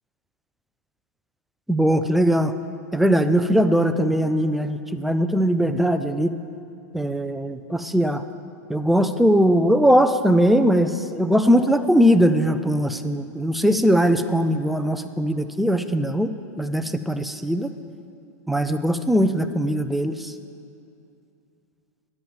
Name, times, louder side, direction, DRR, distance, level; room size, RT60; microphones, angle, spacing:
voice 1, 1.7-2.5 2.9-6.3 6.9-8.2 8.7-17.7 18.5-20.3, equal, ahead, 9 dB, 0.4 m, -20 dB
10.5 x 5.5 x 7.8 m, 2.6 s
hypercardioid pair, 125°, 9 cm